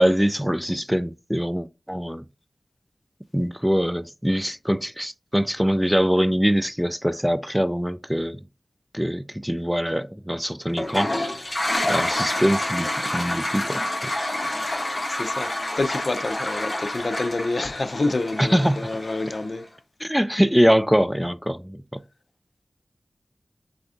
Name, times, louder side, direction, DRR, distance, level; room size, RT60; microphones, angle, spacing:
voice 1, 0.0-2.2 3.3-8.4 8.9-11.1 11.9-13.8 18.4-18.9 20.0-21.8, equal, 5° right, 0.3 m, -23 dB
Toilet flush, 10.7-19.6, left 1 dB, 45° left, 1.7 m, -28 dB
voice 2, 15.1-19.6, left 2 dB, 65° left, 0.6 m, -28 dB
3.9 x 3.4 x 3.7 m
wide cardioid pair, 60°, 0 cm